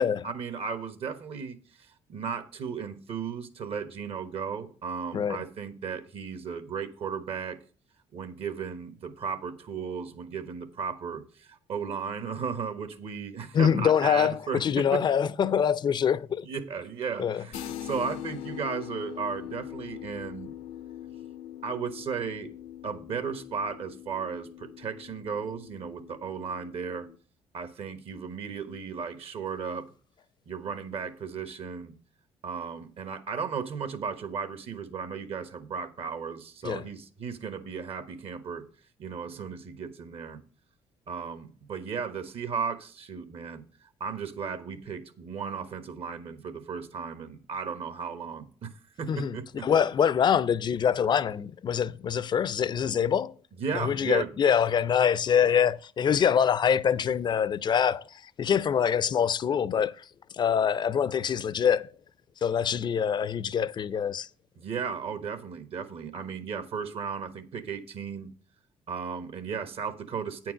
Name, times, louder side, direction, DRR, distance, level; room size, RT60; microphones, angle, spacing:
voice 1, 0.0-1.6 2.1-7.6 8.1-15.0 16.4-20.5 21.6-22.5 22.8-27.1 27.5-29.9 30.5-31.9 32.4-38.7 39.0-40.4 41.1-43.6 44.0-49.7 53.6-54.3 64.6-68.3 68.9-70.5, right 6 dB, 60° right, 1.2 m, -35 dB
voice 2, 13.5-16.5 17.2-17.4 36.6-36.8 49.1-49.4 49.6-53.3 53.7-60.0 60.3-61.9 62.4-64.3, left 8 dB, 40° left, 0.4 m, -25 dB
sound 1, 17.5-27.2, left 11 dB, 85° left, 0.7 m, -42 dB
8.9 x 4.6 x 7.5 m
cardioid pair, 95°, 11 cm